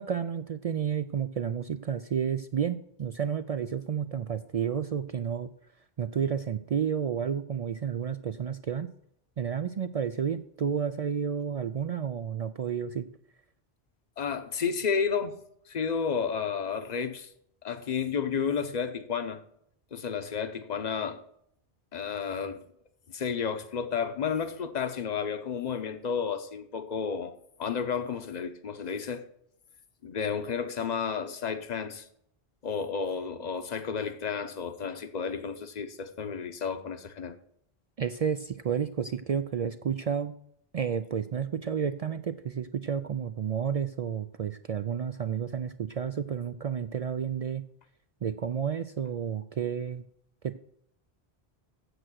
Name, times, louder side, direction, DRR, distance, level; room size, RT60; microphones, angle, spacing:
voice 1, 0.0-5.5 6.0-8.9 9.4-13.1 38.0-40.4 40.7-47.6 48.2-50.0 50.4-50.6, right 7 dB, 55° right, 0.4 m, -31 dB
voice 2, 14.2-15.4 15.7-17.3 17.6-19.4 19.9-21.2 21.9-22.6 23.1-29.2 30.0-32.1 32.6-37.4, left 6 dB, 45° left, 0.9 m, -32 dB
8.1 x 7.7 x 6.3 m
omnidirectional pair, 1.1 m